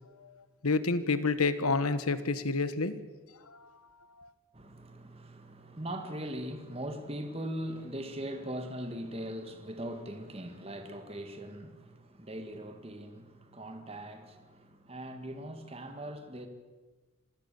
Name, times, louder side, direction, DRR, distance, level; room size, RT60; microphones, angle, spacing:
voice 1, 0.6-3.0 3.5-3.6 4.2-4.3, left 3 dB, 85° left, 1.3 m, -29 dB
voice 2, 4.5-16.5, right 1 dB, 25° right, 1.7 m, -40 dB
27.0 x 16.5 x 7.0 m
head